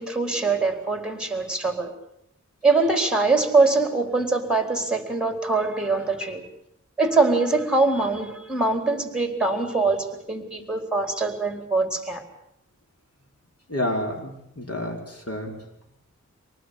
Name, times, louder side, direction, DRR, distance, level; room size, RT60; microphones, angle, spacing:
voice 1, 0.0-1.9 2.6-6.4 7.0-12.2, right 3 dB, 5° right, 6 dB, 4.3 m, -23 dB
voice 2, 13.7-15.0 15.3-15.5, left 1 dB, 55° left, 1 dB, 5.7 m, -29 dB
25.0 x 19.0 x 8.5 m, 0.78 s
wide cardioid pair, 60°, 30 cm